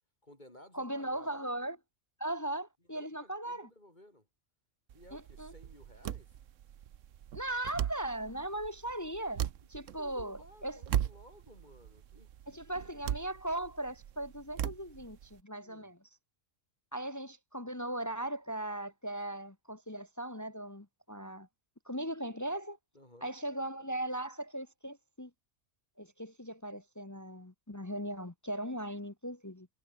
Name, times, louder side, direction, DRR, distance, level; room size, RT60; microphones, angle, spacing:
voice 1, 0.2-1.5 2.9-4.3 4.9-6.4 10.0-12.9 15.6-15.9 22.9-23.4, left 1 dB, 35° left, 6.0 m, -57 dB
voice 2, 0.7-1.8 2.2-3.7 5.1-5.5 7.3-10.8 12.5-16.0 16.9-21.5 21.9-22.8 23.2-25.3 26.0-29.7, right 1 dB, 15° left, 0.9 m, -38 dB
sound 1, 4.9-15.4, right 10 dB, 85° right, 1.2 m, -39 dB
omnidirectional pair, 1.3 m